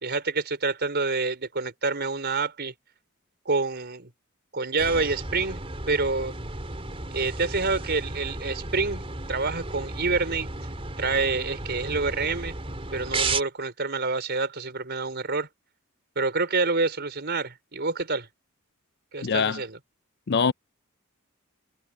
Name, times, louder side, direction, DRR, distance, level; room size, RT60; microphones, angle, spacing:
voice 1, 0.0-2.7 3.4-4.1 4.5-6.3 7.1-9.0 9.3-10.5 11.0-12.6 12.9-15.5 16.1-18.3 19.1-19.8, right 3 dB, 50° right, 4.6 m, -27 dB
sound 1, 4.8-13.4, right 3 dB, 25° right, 3.6 m, -34 dB
voice 2, 19.2-19.6 20.3-20.5, left 6 dB, 50° left, 0.5 m, -23 dB
head